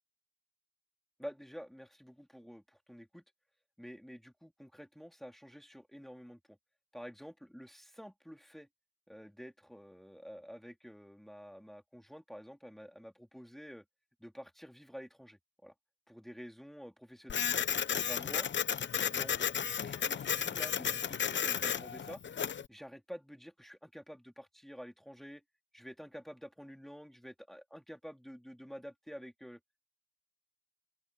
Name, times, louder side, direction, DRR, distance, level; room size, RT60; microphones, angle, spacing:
voice 1, 1.2-3.2 3.8-6.6 6.9-8.7 9.1-13.8 14.2-15.7 16.1-17.5 17.9-18.5 19.1-22.2 22.7-25.4 25.7-29.6, equal, ahead, 3.6 m, -49 dB
Printer, 17.3-22.7, left 8 dB, 40° left, 0.9 m, -33 dB
open air
cardioid pair, 90°, 30 cm